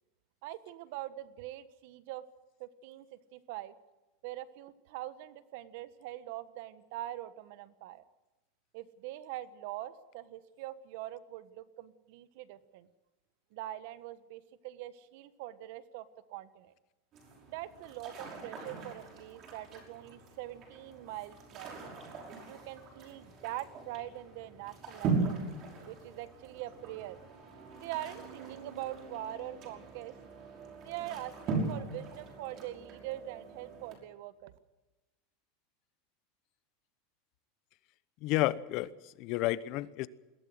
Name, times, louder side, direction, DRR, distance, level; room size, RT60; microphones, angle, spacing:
voice 1, 0.4-2.2 2.6-3.1 3.3-3.7 4.2-8.0 8.7-12.9 13.5-16.7 17.5-21.8 22.5-25.4 25.9-27.2 27.7-30.1 30.8-34.5, right 14 dB, 60° right, 14 dB, 1.3 m, -43 dB
sound 1, 17.1-34.0, right 4 dB, 35° right, 5.6 m, -40 dB
voice 2, 38.2-40.1, left 16 dB, 45° left, 17 dB, 0.9 m, -31 dB
22.0 x 16.5 x 7.8 m, 1.1 s
supercardioid pair, 155°, 0 cm